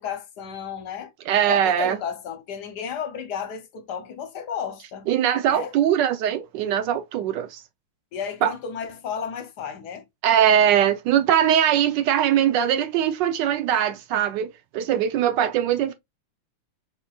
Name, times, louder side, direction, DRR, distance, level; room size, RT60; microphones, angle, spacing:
voice 1, 0.0-1.1 1.5-5.1 5.5-5.7 8.1-10.0, left 7 dB, 65° left, 1.2 m, -33 dB
voice 2, 1.3-2.0 5.1-7.6 8.4-8.5 10.2-15.9, right 10 dB, 75° right, 1.2 m, -21 dB
4.5 x 4.0 x 2.3 m
omnidirectional pair, 2.1 m